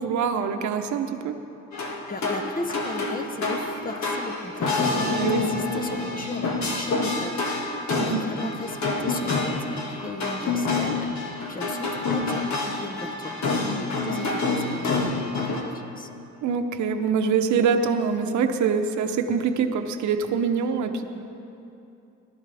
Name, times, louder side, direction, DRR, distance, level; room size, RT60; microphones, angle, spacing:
voice 1, 0.0-1.3 5.2-5.5 8.0-8.2 16.4-21.0, right 6 dB, 70° right, 6 dB, 0.9 m, -24 dB
sound 1, 1.7-15.6, left 3 dB, 65° left, 1.8 m, -27 dB
voice 2, 2.1-7.5 7.8-16.1, left 2 dB, 30° left, 7 dB, 1.0 m, -37 dB
19.0 x 12.0 x 3.4 m, 2.8 s
cardioid pair, 90°, 30 cm